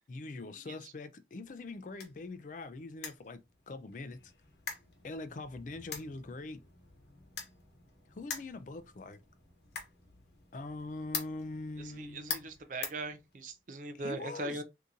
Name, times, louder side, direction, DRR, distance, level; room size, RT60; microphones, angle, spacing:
voice 1, 0.1-3.4 3.7-4.3 5.0-6.6 8.1-9.2 10.5-12.5 13.9-14.6, left 2 dB, 45° left, 0.4 m, -43 dB
sound 1, 1.4-13.7, left 6 dB, 70° left, 1.0 m, -46 dB
voice 2, 11.8-14.6, right 2 dB, 45° right, 0.4 m, -40 dB
2.8 x 2.5 x 3.7 m
head